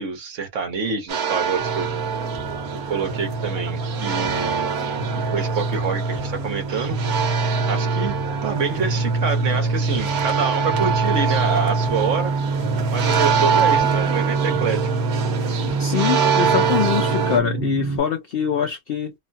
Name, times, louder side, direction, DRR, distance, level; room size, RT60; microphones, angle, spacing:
voice 1, 0.0-1.9 2.9-7.0 7.7-12.3 12.9-14.8, right 6 dB, 60° right, 1.3 m, -27 dB
sound 1, 1.1-17.4, right 7 dB, 85° right, 1.3 m, -25 dB
sound 2, 1.6-18.0, right 3 dB, 20° right, 0.6 m, -25 dB
voice 2, 15.8-19.1, left 8 dB, 85° left, 0.5 m, -23 dB
3.0 x 2.2 x 2.5 m
omnidirectional pair, 1.5 m